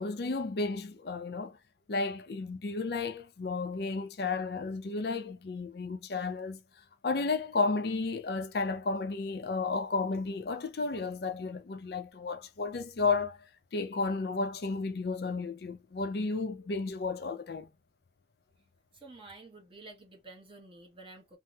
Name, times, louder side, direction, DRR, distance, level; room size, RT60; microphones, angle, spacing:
voice 1, 0.0-1.6 1.9-6.6 7.0-13.4 13.7-17.7, left 3 dB, 60° left, 0.5 m, -33 dB
voice 2, 19.0-21.4, right 2 dB, 30° right, 0.9 m, -50 dB
2.7 x 2.0 x 3.3 m
head